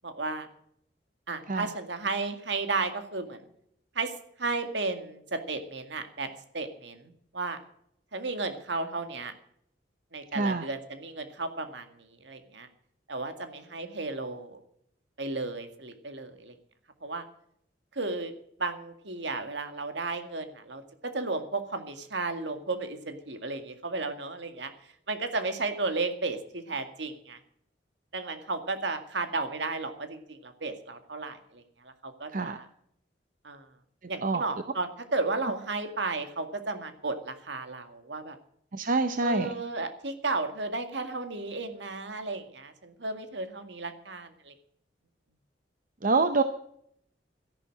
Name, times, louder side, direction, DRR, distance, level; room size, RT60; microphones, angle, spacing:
voice 1, 0.0-0.5 1.3-3.4 4.0-7.6 8.1-9.3 10.1-12.7 13.1-14.6 15.2-16.5 17.0-17.2 17.9-18.3 18.6-27.4 28.1-32.7 33.4-33.7 34.1-38.4 39.2-44.5, right 3 dB, 70° right, 7 dB, 2.1 m, -34 dB
voice 2, 38.7-39.5 46.0-46.4, right 3 dB, 50° right, 9 dB, 0.8 m, -26 dB
13.5 x 11.5 x 6.4 m, 0.69 s
head